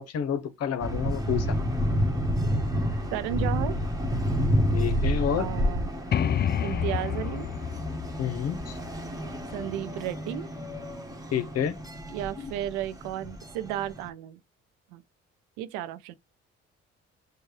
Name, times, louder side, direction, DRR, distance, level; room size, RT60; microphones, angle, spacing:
voice 1, 0.0-1.6 4.7-5.5 8.2-8.8 11.3-11.8 12.4-12.5, left 8 dB, 55° left, 0.9 m, -29 dB
sound 1, 0.8-14.1, equal, 10° right, 1.5 m, -29 dB
voice 2, 3.1-3.8 5.4-5.9 6.6-7.5 9.5-10.5 12.1-14.4 14.9-15.0 15.6-16.1, right 12 dB, 85° right, 0.6 m, -33 dB
sound 2, 6.1-9.8, left 9 dB, 35° left, 0.4 m, -30 dB
6.5 x 2.3 x 3.1 m
supercardioid pair, 60°, 31 cm